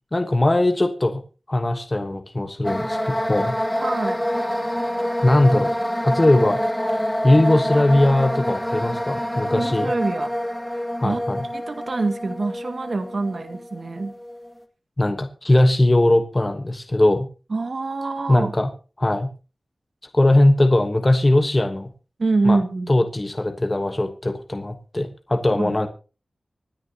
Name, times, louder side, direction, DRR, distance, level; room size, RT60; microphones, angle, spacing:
voice 1, 0.1-1.2 1.5-3.6 5.2-5.7 6.0-6.6 7.2-9.9 11.0-11.4 15.0-17.3 18.3-18.7 19.0-19.3 20.1-21.9 22.4-22.6 22.9-25.9, left 1 dB, 30° left, 7 dB, 1.2 m, -19 dB
sound 1, 2.6-14.5, equal, 5° left, 1.9 m, -26 dB
voice 2, 3.8-4.2 9.5-10.3 11.0-11.2 11.5-14.1 17.5-18.5 22.2-22.9 25.6-25.8, right 3 dB, 65° right, 7 dB, 1.9 m, -25 dB
25.5 x 9.8 x 2.9 m, 0.35 s
wide cardioid pair, 85°, 0 cm